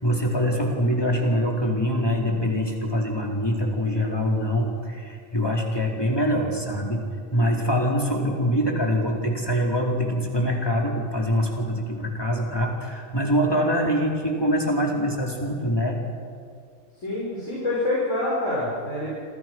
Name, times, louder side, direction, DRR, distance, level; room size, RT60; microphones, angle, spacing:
voice 1, 0.0-7.0 7.3-16.0, equal, 20° left, -1 dB, 4.3 m, -24 dB
voice 2, 17.0-19.2, left 2 dB, 90° left, -7 dB, 6.6 m, -26 dB
28.5 x 26.0 x 6.2 m, 2.2 s
omnidirectional pair, 1.3 m